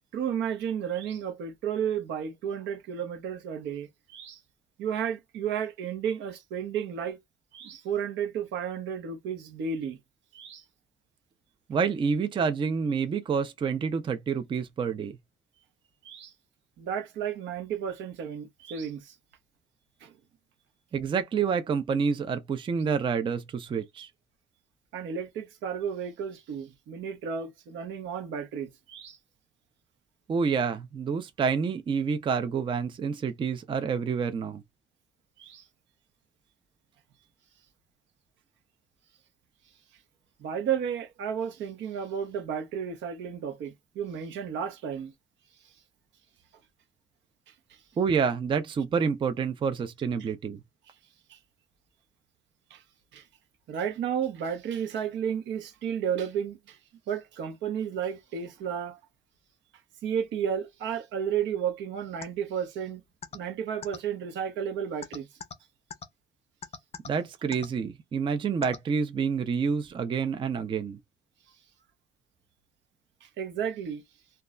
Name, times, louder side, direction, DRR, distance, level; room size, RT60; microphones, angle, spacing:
voice 1, 0.1-4.4 4.8-7.2 7.5-10.0 10.3-10.6 16.0-16.3 16.8-19.2 20.0-20.1 24.9-29.2 35.4-35.6 40.4-45.1 47.5-47.8 50.2-50.3 51.3-51.4 52.7-52.8 53.1-53.2 53.7-56.8 57.1-59.0 60.0-63.0 63.3-65.3 73.2-74.0, right 8 dB, 80° right, 0.7 m, -33 dB
voice 2, 11.7-15.1 20.9-24.1 30.3-34.6 48.0-50.6 67.1-71.0, right 6 dB, 25° right, 0.4 m, -28 dB
sound 1, 62.2-62.3 63.2-63.4 63.8-64.0 65.0-65.5 65.9-66.0 66.6-67.1 67.5-67.7 68.6-68.8, left 6 dB, 35° left, 0.5 m, -38 dB
2.3 x 2.0 x 3.5 m
cardioid pair, 140°, 19 cm